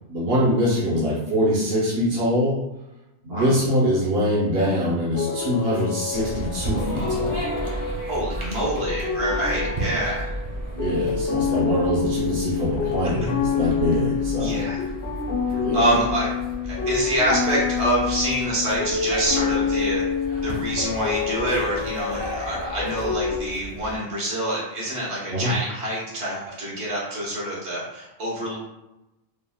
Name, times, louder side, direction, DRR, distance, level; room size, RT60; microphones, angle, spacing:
voice 1, 0.1-2.6 3.2-7.5 10.8-14.6 15.6-15.8 25.3-25.5, equal, 65° right, -7 dB, 0.9 m, -23 dB
sound 1, 5.1-23.4, left 6 dB, 65° left, 0.9 m, -28 dB
sound 2, 6.1-24.0, right 1 dB, 35° right, 0.6 m, -34 dB
voice 2, 8.1-10.3 14.4-14.8 15.5-16.3 16.6-20.0 20.4-28.6, right 1 dB, 80° right, -6 dB, 1.2 m, -26 dB
3.3 x 2.0 x 2.2 m, 0.95 s
omnidirectional pair, 1.1 m